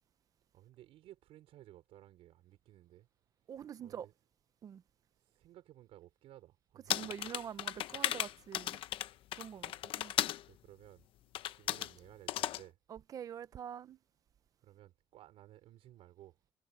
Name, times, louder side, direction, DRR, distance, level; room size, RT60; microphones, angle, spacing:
voice 1, 0.5-3.1 3.5-4.1 5.2-7.1 9.9-11.1 11.6-12.8 14.6-16.4, right 14 dB, 80° right, 5.0 m, -58 dB
voice 2, 3.5-4.1 4.6-4.8 6.9-8.8 9.4-10.1 12.9-14.0, right 9 dB, 35° right, 0.6 m, -45 dB
sound 1, 6.9-10.4 11.3-11.9 12.3-12.6, left 13 dB, 65° left, 0.7 m, -36 dB
cardioid pair, 180°, 10 cm